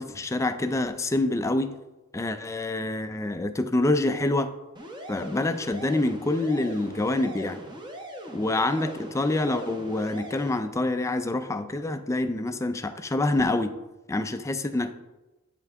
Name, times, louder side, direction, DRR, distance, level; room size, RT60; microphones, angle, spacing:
voice 1, 0.0-1.7 2.1-4.5 5.1-7.6 8.3-13.7 14.1-14.9, left 2 dB, 15° left, 8 dB, 0.3 m, -26 dB
sound 1, 4.8-10.6, equal, 20° right, 0.8 m, -40 dB
8.3 x 5.5 x 3.5 m, 1.1 s
head